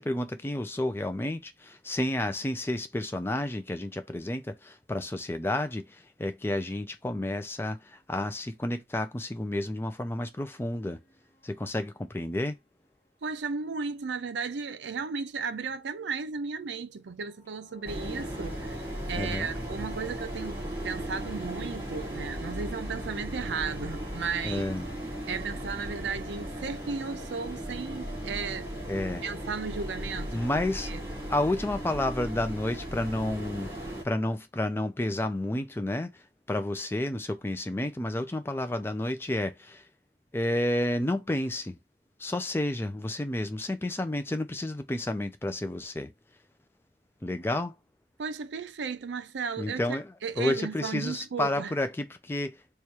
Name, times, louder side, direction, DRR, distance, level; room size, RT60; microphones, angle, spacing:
voice 1, 0.0-11.0 11.4-12.6 19.2-19.5 24.4-24.9 28.9-29.2 30.3-30.9 31.3-39.9 40.3-41.8 42.2-46.1 47.2-47.7 49.6-52.7, left 1 dB, 15° left, 0.4 m, -31 dB
sound 1, 11.0-12.1 17.2-24.2, right 1 dB, 35° left, 1.5 m, -52 dB
voice 2, 13.2-24.7 25.3-28.7 29.2-30.4 30.9-31.0 48.2-49.8 50.2-51.7, right 5 dB, 80° right, 0.5 m, -35 dB
sound 2, 17.9-34.0, equal, 15° right, 1.6 m, -37 dB
3.2 x 2.4 x 4.4 m
head